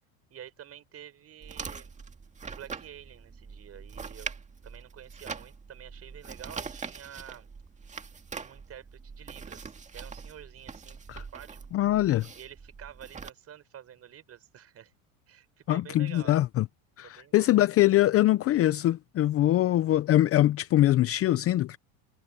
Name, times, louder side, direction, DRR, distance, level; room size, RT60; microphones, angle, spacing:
voice 1, 0.3-2.0 2.5-7.5 8.4-11.6 12.3-14.9 15.3-16.4 17.0-17.5, right 10 dB, 35° right, 6.7 m, -49 dB
sound 1, 1.4-13.3, right 5 dB, 15° right, 2.0 m, -43 dB
voice 2, 11.7-12.3 15.7-16.7 17.0-21.8, left 14 dB, 35° left, 0.7 m, -23 dB
supercardioid pair, 125°, 43 cm